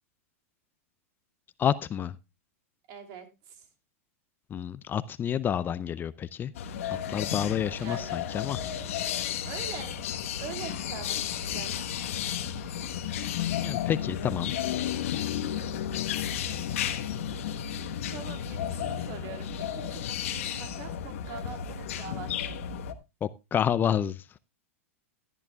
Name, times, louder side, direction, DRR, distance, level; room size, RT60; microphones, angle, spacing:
voice 1, 1.6-2.2 4.5-6.5 7.1-8.6 13.5-14.5 23.2-24.2, left 9 dB, 25° left, 17 dB, 0.5 m, -29 dB
voice 2, 2.9-3.7 7.8-8.2 9.5-10.1 10.4-11.7 17.5-17.8 18.1-22.3, right 7 dB, 50° right, 6 dB, 3.1 m, -43 dB
sound 1, 6.5-22.9, left 9 dB, 70° left, 1.3 m, -33 dB
16.5 x 11.0 x 2.4 m, 0.25 s
hypercardioid pair, 110°, 8 cm